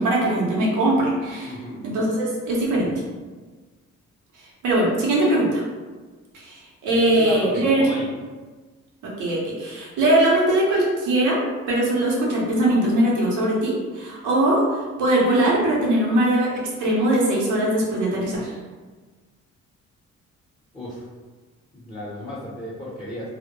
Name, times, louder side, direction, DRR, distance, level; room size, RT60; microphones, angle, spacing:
voice 1, 0.0-1.6 1.8-3.0 4.6-5.6 6.3-7.9 9.0-11.4 11.7-18.5, right 1 dB, 85° right, -4 dB, 0.7 m, -21 dB
voice 2, 1.4-1.8 6.9-8.1 20.7-21.1 21.7-23.3, left 1 dB, 15° left, -7 dB, 0.6 m, -35 dB
2.1 x 2.0 x 2.9 m, 1.4 s
cardioid pair, 90°, 30 cm